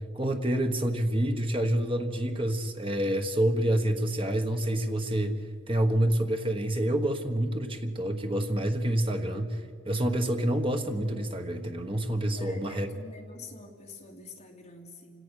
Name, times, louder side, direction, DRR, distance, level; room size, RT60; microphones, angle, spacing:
voice 1, 0.1-5.3 5.7-9.6 9.8-12.9, right 1 dB, 30° right, 5 dB, 1.3 m, -27 dB
voice 2, 12.4-15.2, left 3 dB, 35° left, 0 dB, 2.5 m, -47 dB
27.5 x 17.5 x 6.5 m, 2.1 s
head